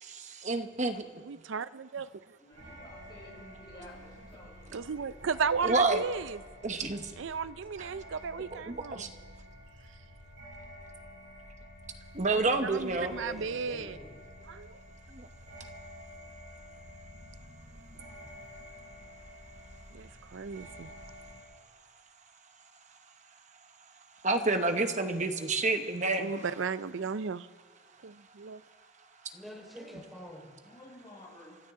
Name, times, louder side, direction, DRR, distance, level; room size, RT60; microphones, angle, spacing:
voice 1, 0.0-1.0 5.6-6.0 6.6-7.1 7.8-7.9 8.7-9.1 12.1-13.1 15.1-15.3 24.2-26.3, right 3 dB, 35° right, 1.1 m, -29 dB
voice 2, 1.2-2.4 4.7-6.4 7.2-9.1 12.6-14.0 14.5-14.8 19.9-20.9 26.2-27.5 28.0-28.6, right 5 dB, 70° right, 0.5 m, -35 dB
voice 3, 2.4-5.2 30.6-31.6, left 1 dB, 25° left, 6.1 m, -52 dB
sound 1, 2.5-21.4, equal, 90° right, 6.0 m, -50 dB
voice 4, 12.3-14.1 29.3-30.5, equal, ahead, 4.3 m, -45 dB
29.0 x 12.5 x 3.7 m
head